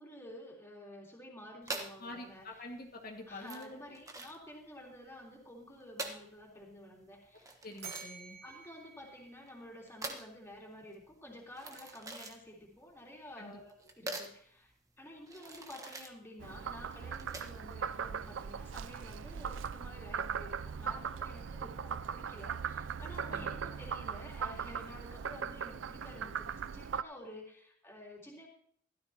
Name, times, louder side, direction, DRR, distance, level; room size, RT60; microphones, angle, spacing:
voice 1, 0.0-2.6 3.3-7.5 8.4-28.5, left 1 dB, 15° left, -3 dB, 3.7 m, -51 dB
sound 1, 1.6-17.7, right 2 dB, 20° right, 1.2 m, -46 dB
voice 2, 2.0-3.8 7.6-8.4 13.4-13.6 23.3-23.5, left 2 dB, 50° left, 1 dB, 2.0 m, -46 dB
Bell, 7.8-10.1, right 6 dB, 60° right, 2.4 m, -50 dB
Frog, 16.4-27.0, right 7 dB, 75° right, 0.4 m, -39 dB
16.0 x 13.0 x 2.9 m, 0.63 s
head